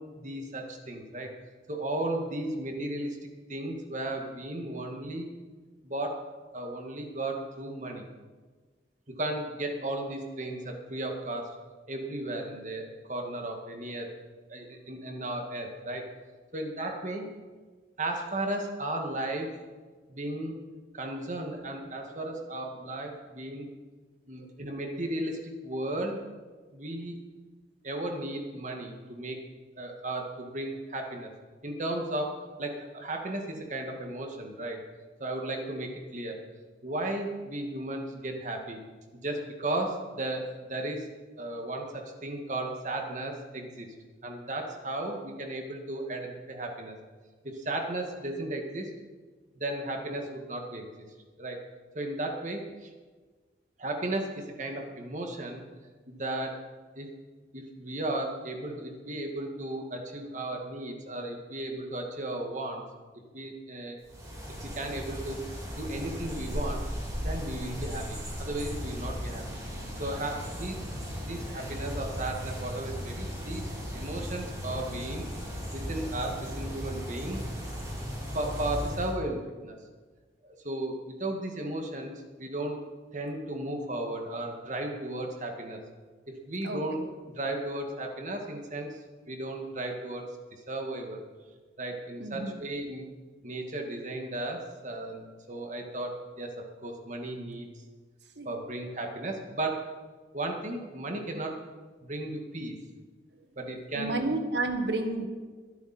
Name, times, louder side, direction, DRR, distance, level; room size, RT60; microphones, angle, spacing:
voice 1, 0.0-1.3 1.7-3.2 3.5-5.3 5.8-6.2 6.5-8.0 9.2-11.5 11.9-14.1 14.5-16.0 16.5-17.3 18.0-19.6 20.1-20.6 20.9-23.7 24.3-26.3 26.7-27.2 27.8-29.4 29.8-31.3 31.6-34.8 35.2-36.4 36.8-38.8 39.1-41.1 41.4-43.9 44.2-46.9 47.4-48.9 49.6-50.9 51.4-51.6 51.9-52.9 53.8-55.6 56.1-56.7 57.0-57.1 57.5-62.8 63.3-64.0 64.6-65.4 65.8-66.9 67.2-69.4 70.0-70.8 71.2-75.3 75.7-77.4 78.3-79.8 80.4-82.8 83.1-85.8 86.3-87.0 87.3-89.0 89.3-90.3 90.7-91.2 91.8-93.1 93.4-96.5 96.8-97.7 98.5-100.0 100.3-101.6 102.0-102.8 103.6-104.2, right 1 dB, 45° right, 2 dB, 2.1 m, -35 dB
sound 1, 64.0-79.1, equal, 20° right, 4.5 m, -36 dB
voice 2, 86.6-87.1 92.2-92.6 98.4-98.5 103.9-105.3, right 2 dB, 70° right, 5 dB, 1.7 m, -31 dB
21.5 x 11.0 x 4.4 m, 1.4 s
head